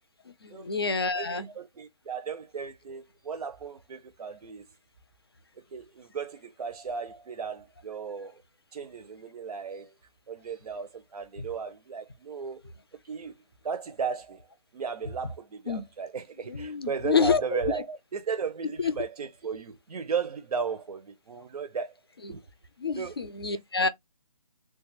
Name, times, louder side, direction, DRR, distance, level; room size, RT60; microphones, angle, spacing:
voice 1, 0.3-1.5 15.7-15.9 16.5-17.8 18.8-19.1 22.2-22.3 22.8-23.9, left 5 dB, 40° left, 0.4 m, -28 dB
voice 2, 1.1-4.6 5.7-8.4 8.7-9.9 10.3-12.7 13.0-13.3 13.6-14.5 14.7-21.9 22.3-22.4 22.9-23.1, right 6 dB, 85° right, 0.5 m, -35 dB
3.1 x 2.3 x 3.2 m
hypercardioid pair, 180°, 19 cm